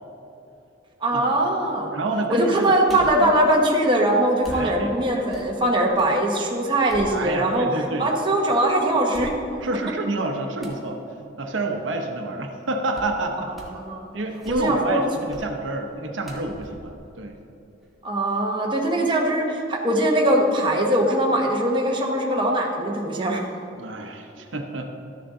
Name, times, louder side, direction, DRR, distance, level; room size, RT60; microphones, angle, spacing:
voice 1, 1.0-1.9 2.3-9.3 13.8-14.1 14.5-15.0 18.0-23.4, right 1 dB, 25° right, -1 dB, 1.0 m, -21 dB
voice 2, 1.9-3.3 4.5-4.9 7.1-8.1 9.6-11.0 11.4-13.5 14.1-17.3 23.7-25.0, right 2 dB, 85° right, 4 dB, 0.8 m, -28 dB
sound 1, 2.9-3.3 4.4-6.2 6.6-7.7 8.2-8.3 9.1-9.8 10.6-10.9 12.9-13.2 13.5-13.9 14.3-14.9 15.3-15.6 16.2-17.9 18.3-18.4, equal, ahead, 1.3 m, -41 dB
12.5 x 6.8 x 3.7 m, 2.8 s
head